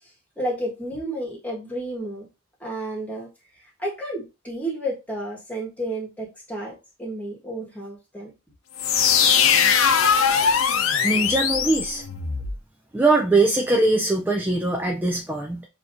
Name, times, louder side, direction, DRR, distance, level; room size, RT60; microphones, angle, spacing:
voice 1, 0.4-2.3 2.6-3.3 3.8-8.3, right 1 dB, 10° left, -3 dB, 1.4 m, -31 dB
sound 1, 8.8-12.6, left 7 dB, 85° left, 0.6 m, -20 dB
voice 2, 11.0-12.0 12.9-15.7, right 2 dB, 10° right, 1 dB, 0.4 m, -21 dB
6.8 x 2.9 x 2.6 m, 0.26 s
head